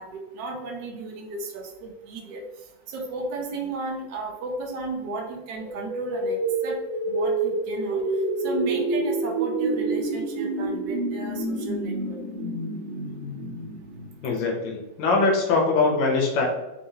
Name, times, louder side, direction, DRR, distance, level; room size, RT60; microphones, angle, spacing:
voice 1, 0.0-2.4 2.9-6.8 7.1-8.0 8.4-12.2, right 3 dB, 70° right, 0 dB, 1.2 m, -34 dB
sound 1, 5.6-14.5, right 2 dB, 85° right, 1.7 m, -28 dB
voice 2, 14.2-16.5, left 3 dB, 70° left, -1 dB, 1.4 m, -22 dB
4.6 x 2.6 x 2.7 m, 1.0 s
omnidirectional pair, 2.1 m